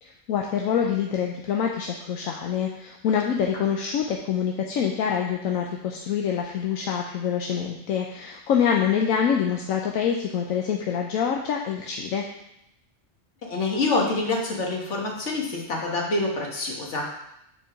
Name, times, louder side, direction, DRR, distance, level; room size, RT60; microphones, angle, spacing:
voice 1, 0.0-12.2, left 8 dB, 80° left, 1 dB, 1.1 m, -26 dB
voice 2, 13.4-17.0, left 3 dB, 60° left, -1 dB, 1.7 m, -26 dB
6.0 x 4.5 x 5.8 m, 0.82 s
omnidirectional pair, 1.4 m